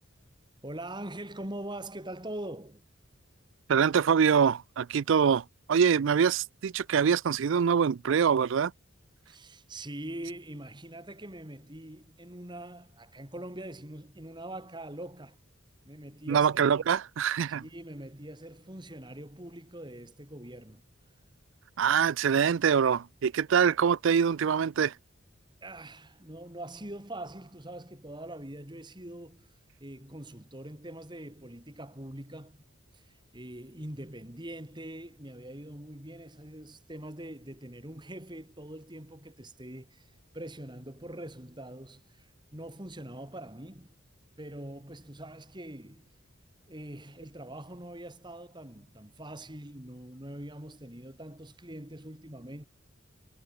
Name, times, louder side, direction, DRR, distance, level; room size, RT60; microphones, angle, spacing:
voice 1, 0.6-2.8 9.3-15.4 15.8-16.5 17.5-20.8 25.6-29.5 29.8-32.6 32.9-40.1 40.3-44.0 44.4-46.1 46.7-52.7, right 1 dB, 20° right, 2.7 m, -43 dB
voice 2, 3.7-8.7 16.3-17.6 21.8-24.9, right 7 dB, 65° right, 0.4 m, -24 dB
head